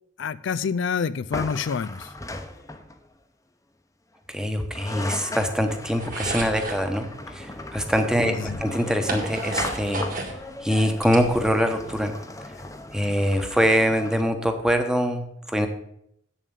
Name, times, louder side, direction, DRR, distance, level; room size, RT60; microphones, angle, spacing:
voice 1, 0.2-2.1 8.2-8.6, left 6 dB, 65° left, 14 dB, 0.4 m, -27 dB
sound 1, 1.3-3.1 4.4-4.5 4.7-14.2, left 2 dB, 15° left, 0.9 m, -37 dB
voice 2, 4.3-10.0 10.6-12.2 12.9-15.7, equal, 5° right, 6 dB, 1.2 m, -24 dB
sound 2, 6.0-6.8 8.0-8.1 8.5-10.4 10.8-11.8, right 3 dB, 45° right, 2.3 m, -32 dB
8.3 x 7.3 x 8.2 m, 0.74 s
head